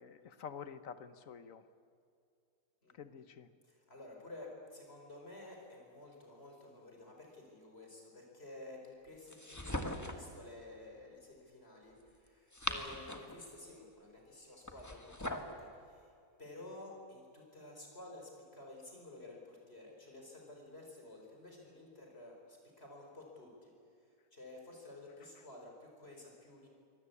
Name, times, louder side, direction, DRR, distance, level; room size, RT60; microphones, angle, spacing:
voice 1, 0.0-1.6 3.0-3.5, left 7 dB, 65° left, 12 dB, 1.3 m, -48 dB
voice 2, 3.6-16.1 16.4-23.7 24.0-26.7, left 2 dB, 40° left, 0 dB, 4.8 m, -52 dB
sound 1, 9.3-10.3 12.3-13.4 14.7-15.6, left 1 dB, 10° left, 1.5 m, -40 dB
24.5 x 18.0 x 8.4 m, 2.4 s
omnidirectional pair, 1.6 m